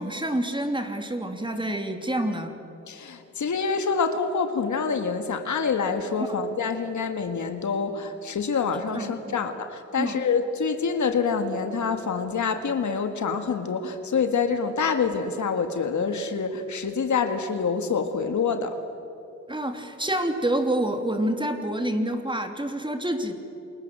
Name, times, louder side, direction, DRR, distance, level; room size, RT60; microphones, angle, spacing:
voice 1, 0.0-2.5 6.3-6.4 8.9-9.4 10.0-10.2 19.5-23.3, right 1 dB, 15° right, 5 dB, 3.2 m, -28 dB
voice 2, 2.9-18.7, left 5 dB, 80° left, 7 dB, 1.8 m, -26 dB
28.5 x 21.0 x 7.5 m, 2.9 s
cardioid pair, 60°, 29 cm